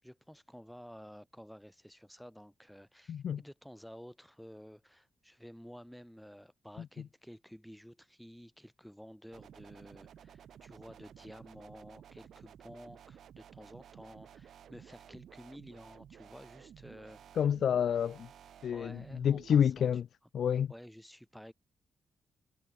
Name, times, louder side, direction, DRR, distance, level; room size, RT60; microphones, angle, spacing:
voice 1, 0.0-17.2 18.7-19.9 20.7-21.5, equal, ahead, 7.2 m, -52 dB
voice 2, 3.1-3.4 17.4-18.3 18.6-20.1 20.3-20.7, left 8 dB, 70° left, 0.6 m, -29 dB
sound 1, 9.3-19.6, right 9 dB, 75° right, 6.5 m, -54 dB
cardioid pair, 125°, 0 cm